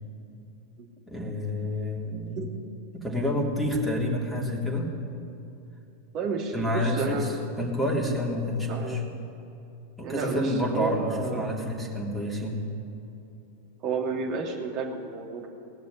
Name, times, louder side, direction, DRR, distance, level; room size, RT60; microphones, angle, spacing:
voice 1, 1.1-2.4 2.9-4.9 6.5-9.0 10.0-12.6, left 1 dB, ahead, -5 dB, 3.1 m, -28 dB
voice 2, 6.1-7.3 8.7-9.0 10.0-11.5 13.8-15.5, right 4 dB, 35° right, 0 dB, 2.4 m, -31 dB
19.0 x 6.8 x 9.7 m, 2.9 s
figure-of-eight pair, 90°, 0 cm